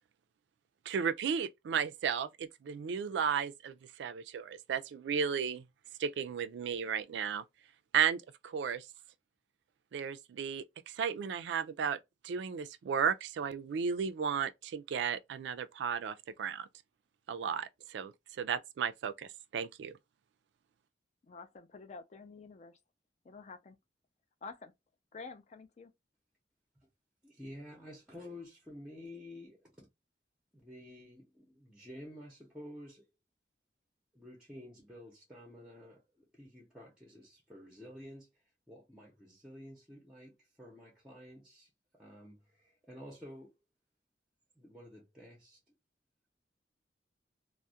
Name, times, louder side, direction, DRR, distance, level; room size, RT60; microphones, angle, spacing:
voice 1, 0.9-5.6 6.0-7.4 7.9-8.8 9.9-12.0 12.2-16.7 17.3-18.1 18.4-19.9, right 7 dB, 75° right, 0.3 m, -34 dB
voice 2, 21.2-22.8 23.2-23.8 24.4-24.7 25.1-25.9, left 4 dB, 40° left, 0.4 m, -49 dB
voice 3, 27.2-29.9 30.5-33.1 34.1-43.5 44.6-45.6, left 1 dB, 5° right, 0.6 m, -51 dB
2.3 x 2.0 x 2.7 m
head